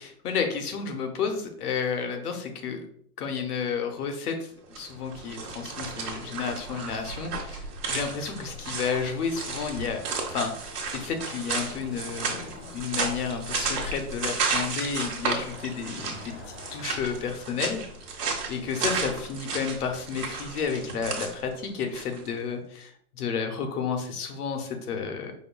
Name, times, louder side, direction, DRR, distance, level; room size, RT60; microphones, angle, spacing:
voice 1, 0.0-2.9 3.2-4.5 4.8-10.0 10.3-10.5 10.9-16.3 16.7-17.8 18.5-25.3, left 6 dB, 75° left, 4 dB, 0.9 m, -31 dB
sound 1, 4.6-22.3, right 4 dB, 85° right, 1.0 m, -33 dB
Cricket / Motor vehicle (road), 10.6-17.4, left 3 dB, 45° left, 0.6 m, -45 dB
5.1 x 2.2 x 2.2 m, 0.63 s
hypercardioid pair, 150°, 46 cm